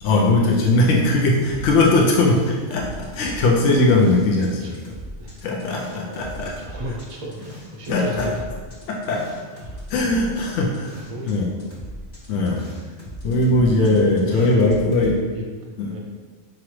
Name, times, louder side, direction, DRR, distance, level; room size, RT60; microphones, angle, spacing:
voice 1, 0.0-4.8 5.4-6.6 7.9-8.3 8.9-9.2 9.9-10.9 11.3-11.5 12.3-12.7 13.2-15.2 15.8-16.0, left 2 dB, 75° left, -2 dB, 0.9 m, -19 dB
sound 1, 1.4-4.5 4.7-11.3 11.6-15.1, equal, 40° left, 0.9 m, -38 dB
voice 2, 4.6-5.3 6.1-8.4 9.2-9.9 10.2-10.7 11.1-11.8 14.2-16.0, right 1 dB, 40° right, -1 dB, 0.5 m, -35 dB
4.8 x 3.0 x 3.0 m, 1.5 s
omnidirectional pair, 1.3 m